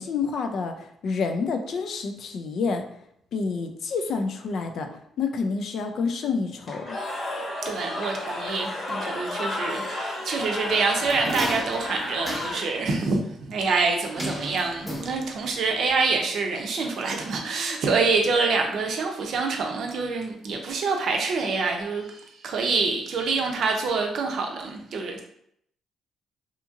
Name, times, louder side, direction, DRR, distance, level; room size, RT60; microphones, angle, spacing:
voice 1, 0.0-2.8 3.3-4.9 5.2-7.0, left 4 dB, 65° left, 6 dB, 0.4 m, -28 dB
Cheering / Crowd, 6.6-13.0, left 1 dB, 45° left, 1.0 m, -32 dB
voice 2, 7.6-25.2, right 4 dB, 65° right, 2 dB, 0.5 m, -26 dB
sound 1, 10.7-12.8 14.2-15.6 15.9-16.0, equal, 10° left, 0.8 m, -35 dB
2.8 x 2.6 x 2.4 m, 0.72 s
cardioid pair, 90°, 0 cm